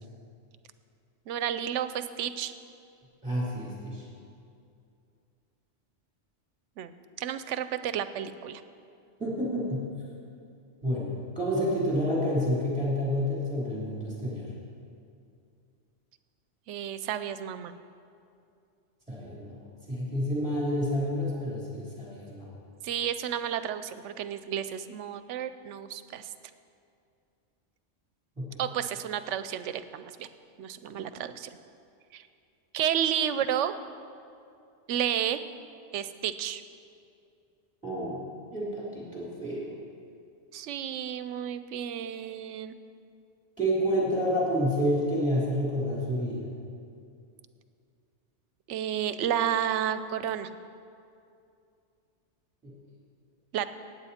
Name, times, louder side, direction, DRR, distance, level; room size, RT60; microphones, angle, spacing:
voice 1, 1.3-2.5 6.8-8.6 16.7-17.7 22.8-26.3 28.6-30.3 30.6-31.6 32.1-32.3 32.7-33.7 34.9-35.4 35.9-36.6 40.5-42.7 48.7-50.5 53.5-53.7, right 9 dB, 80° right, 12 dB, 0.9 m, -31 dB
voice 2, 3.2-4.1 9.2-9.9 10.8-14.5 19.1-19.6 19.9-22.5 28.4-28.6 37.8-38.2 38.5-39.7 43.6-46.5 52.6-52.7, equal, 5° right, -7 dB, 3.5 m, -29 dB
17.5 x 8.6 x 4.3 m, 2.5 s
omnidirectional pair, 1.2 m